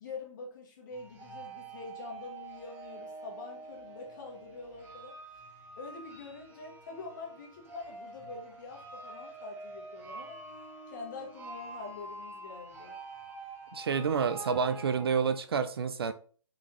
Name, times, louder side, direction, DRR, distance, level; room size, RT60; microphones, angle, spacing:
voice 1, 0.0-5.2 5.7-10.4 10.9-13.0, left 4 dB, 35° left, 1.3 m, -45 dB
sound 1, 0.9-15.4, right 3 dB, 10° right, 0.9 m, -47 dB
voice 2, 13.7-16.1, right 6 dB, 45° right, 0.4 m, -29 dB
4.0 x 3.4 x 3.1 m
figure-of-eight pair, 145°, 17 cm